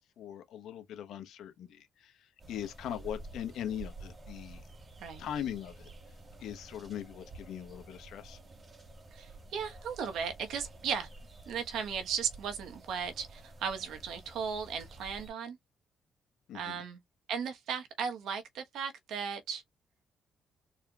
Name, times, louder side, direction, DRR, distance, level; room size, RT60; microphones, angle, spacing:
voice 1, 0.0-4.6 5.2-5.9 6.4-8.4 16.5-16.8, left 10 dB, 80° left, 1.0 m, -40 dB
sound 1, 2.4-15.3, right 2 dB, 35° right, 1.7 m, -50 dB
voice 2, 9.1-11.1 11.5-15.6 16.5-17.0 17.3-19.6, right 7 dB, 80° right, 1.2 m, -36 dB
4.3 x 3.4 x 2.4 m
cardioid pair, 90°, 0 cm